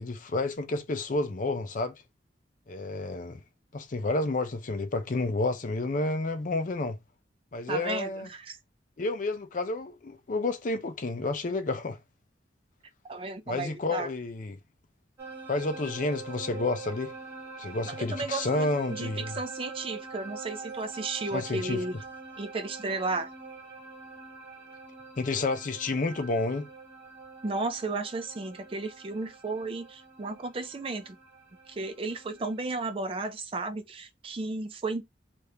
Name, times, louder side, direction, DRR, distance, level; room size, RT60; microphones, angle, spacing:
voice 1, 0.0-1.9 2.7-3.4 3.7-7.0 7.5-8.3 9.0-12.0 13.5-14.6 15.5-17.1 17.6-19.4 21.3-21.8 25.2-26.7, left 2 dB, 45° left, 0.5 m, -30 dB
voice 2, 7.7-8.6 13.1-14.1 17.9-22.0 22.4-23.3 27.4-31.2 31.7-35.0, right 3 dB, 30° right, 0.4 m, -34 dB
sound 1, 15.2-32.6, right 4 dB, 15° right, 1.2 m, -44 dB
2.8 x 2.5 x 3.3 m
head